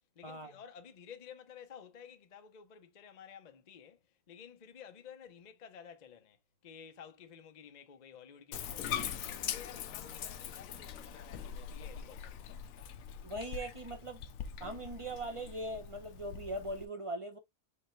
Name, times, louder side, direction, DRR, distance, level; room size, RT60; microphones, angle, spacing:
voice 1, 0.2-4.0 4.3-6.4 6.6-12.5, left 7 dB, 45° left, 0.6 m, -53 dB
Bathtub (filling or washing), 8.5-16.9, left 8 dB, 75° left, 1.0 m, -42 dB
voice 2, 13.2-14.2 14.6-17.4, right 1 dB, 30° right, 0.6 m, -40 dB
5.2 x 2.1 x 4.4 m
omnidirectional pair, 1.5 m